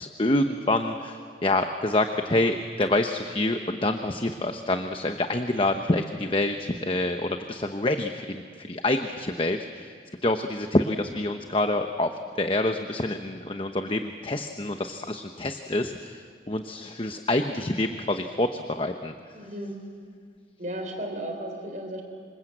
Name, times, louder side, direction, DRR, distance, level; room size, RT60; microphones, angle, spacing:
voice 1, 0.0-9.9 10.2-19.1, left 2 dB, 30° left, 7 dB, 0.9 m, -27 dB
voice 2, 19.3-19.8 20.6-22.0, right 1 dB, 45° right, 3 dB, 3.5 m, -34 dB
27.0 x 25.5 x 8.0 m, 2.1 s
head